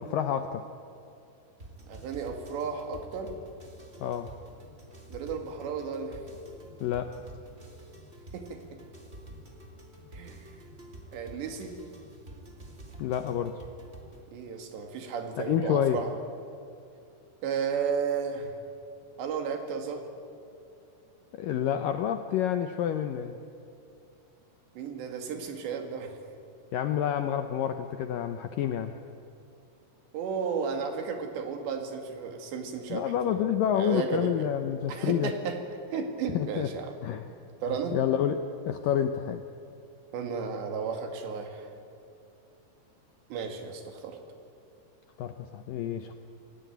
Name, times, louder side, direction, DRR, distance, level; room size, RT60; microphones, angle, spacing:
voice 1, 0.0-0.6 4.0-4.3 6.8-7.1 13.0-13.5 15.4-16.0 21.4-23.4 26.7-28.9 32.9-35.3 36.3-36.7 37.0-37.2 37.9-39.4 45.2-46.1, left 9 dB, 80° left, 8 dB, 2.0 m, -28 dB
sound 1, 1.6-14.3, right 1 dB, 25° right, 1.5 m, -48 dB
voice 2, 1.9-3.4 5.1-6.2 8.3-8.6 10.1-10.5 11.1-11.7 14.3-16.2 17.4-18.6 19.2-20.0 24.8-26.1 30.1-33.5 33.7-34.5 34.9-35.6 35.9-36.9 37.3-38.0 40.1-41.7 43.3-44.2, right 6 dB, 80° right, 5 dB, 4.4 m, -33 dB
27.5 x 16.5 x 9.3 m, 2.6 s
omnidirectional pair, 5.0 m